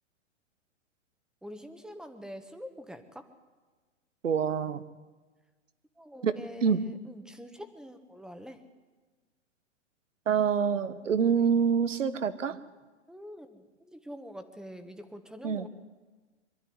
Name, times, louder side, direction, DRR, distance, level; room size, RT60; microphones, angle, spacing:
voice 1, 1.4-3.3 6.0-8.6 13.1-15.7, equal, ahead, 8 dB, 1.3 m, -45 dB
voice 2, 4.2-4.8 6.2-6.8 10.3-12.6 15.4-15.7, right 7 dB, 85° right, 13 dB, 1.4 m, -26 dB
23.5 x 12.5 x 9.6 m, 1.3 s
hypercardioid pair, 125°, 37 cm